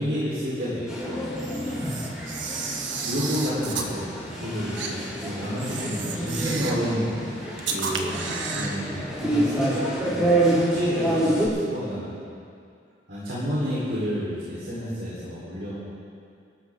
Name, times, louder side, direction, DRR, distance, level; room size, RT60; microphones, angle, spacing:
voice 1, 0.0-2.5 2.7-7.4 7.7-12.1 13.1-15.7, equal, 75° right, -9 dB, 4.4 m, -30 dB
sound 1, 0.9-11.5, right 1 dB, 5° right, 5.1 m, -28 dB
Camera, 1.4-3.9 4.8-4.9 5.6-6.9 7.6-8.8, right 5 dB, 90° right, 1.5 m, -32 dB
24.5 x 13.0 x 3.9 m, 2.4 s
head